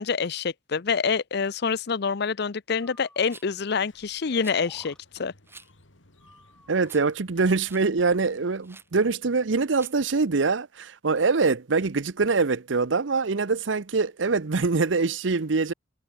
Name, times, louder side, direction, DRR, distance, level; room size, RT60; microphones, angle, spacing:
voice 1, 0.0-4.9 5.2-5.3, left 5 dB, 60° left, 0.6 m, -26 dB
Breathing, 2.8-3.4 4.2-5.0 6.2-7.0, left 1 dB, 5° left, 2.2 m, -54 dB
Rattle, 3.3-3.6 4.4-4.6 5.4-5.7 6.2-6.3 6.8-7.2 7.4-7.9 8.6-8.9 9.7-10.0, right 3 dB, 15° right, 4.0 m, -49 dB
Sliding door, 3.7-9.4, left 2 dB, 85° left, 3.7 m, -59 dB
voice 2, 6.7-15.7, right 4 dB, 75° right, 0.8 m, -24 dB
head